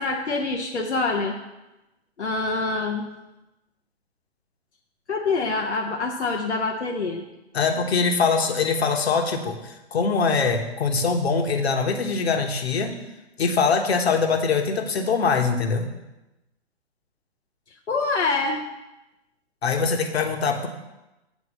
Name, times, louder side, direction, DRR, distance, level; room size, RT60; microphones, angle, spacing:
voice 1, 0.0-1.4 2.2-3.1 5.1-7.2 17.9-18.6, left 3 dB, 85° left, 1 dB, 0.9 m, -25 dB
voice 2, 7.5-12.9 13.4-15.9 19.6-20.7, left 5 dB, 65° left, 5 dB, 1.4 m, -23 dB
8.5 x 4.5 x 7.3 m, 0.99 s
figure-of-eight pair, 125°, 33 cm